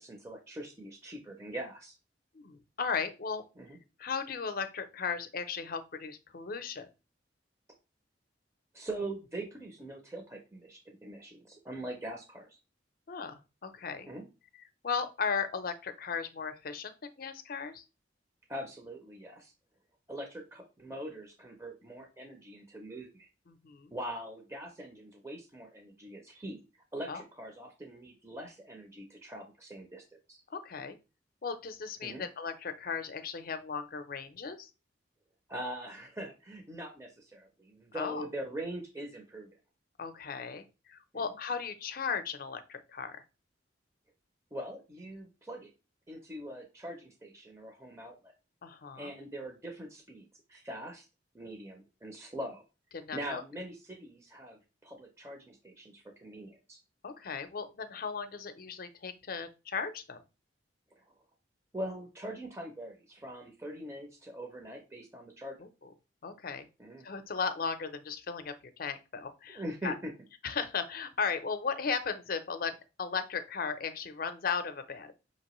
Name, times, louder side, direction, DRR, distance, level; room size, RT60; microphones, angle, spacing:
voice 1, 0.0-1.9 3.6-3.8 8.7-12.5 14.1-14.2 18.5-19.5 20.1-23.3 23.9-26.6 26.9-30.4 32.0-32.2 35.5-39.5 44.5-45.7 46.1-48.3 49.0-51.0 51.3-52.6 53.1-56.8 61.0-61.1 61.7-65.6 66.8-67.0 69.5-70.1, right 1 dB, 15° right, 2 dB, 0.6 m, -42 dB
voice 2, 2.3-3.4 4.0-6.9 13.1-14.1 14.8-17.8 23.5-23.9 27.1-27.2 30.5-31.0 31.4-34.7 37.9-38.2 40.0-43.2 48.6-49.1 52.9-53.4 57.0-60.2 65.6-65.9 66.2-66.7 67.0-69.9 70.4-75.1, left 5 dB, 50° left, 10 dB, 0.5 m, -36 dB
5.2 x 2.9 x 3.0 m, 0.30 s
head